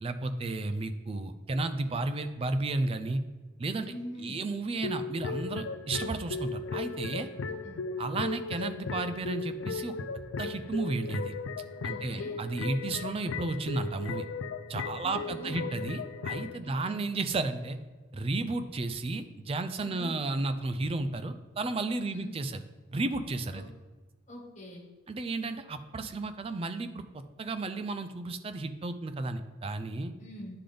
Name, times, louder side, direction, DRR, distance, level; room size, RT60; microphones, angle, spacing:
voice 1, 0.0-3.2 3.6-3.9 4.2-7.3 8.0-9.9 10.4-11.3 11.8-14.3 14.7-17.8 18.1-22.6 22.9-23.7 25.1-30.1, right 2 dB, 30° right, 10 dB, 0.3 m, -33 dB
voice 2, 3.8-4.4 7.4-7.8 11.9-12.4 15.0-15.7 16.6-17.0 19.8-20.1 22.0-22.3 23.5-23.7 24.3-24.8 30.2-30.6, equal, 35° left, -2 dB, 1.4 m, -43 dB
sound 1, 4.8-16.6, left 4 dB, 75° left, 0.4 m, -36 dB
10.0 x 3.8 x 3.4 m, 1.3 s
head